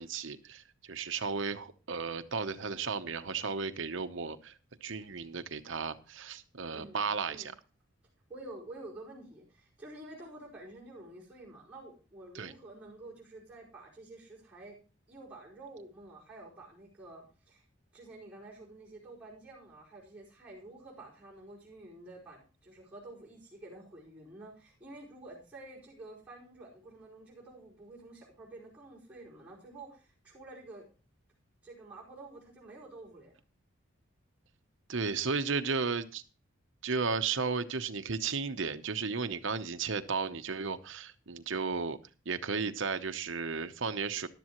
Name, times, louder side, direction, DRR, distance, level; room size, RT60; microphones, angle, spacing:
voice 1, 0.0-7.5 12.3-12.5 34.9-36.2 36.8-42.0 42.2-44.3, right 5 dB, 65° right, 9 dB, 0.8 m, -34 dB
voice 2, 8.3-14.8 15.1-17.6 17.9-30.9 31.6-33.3, right 2 dB, 10° right, -7 dB, 4.8 m, -49 dB
14.0 x 11.5 x 3.0 m, 0.34 s
head